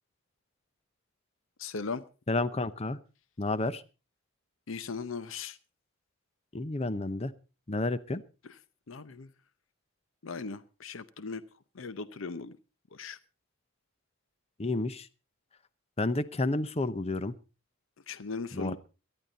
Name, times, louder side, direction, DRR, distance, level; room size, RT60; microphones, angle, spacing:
voice 1, 1.6-2.0 4.7-5.6 8.9-9.3 10.2-11.4 11.7-12.6 12.9-13.2 18.1-18.8, left 4 dB, 70° left, 0.7 m, -38 dB
voice 2, 2.3-3.0 3.4-3.8 6.5-7.3 7.7-8.2 14.6-15.1 16.0-17.3 18.5-18.8, left 2 dB, 30° left, 0.8 m, -30 dB
18.0 x 12.0 x 4.0 m
head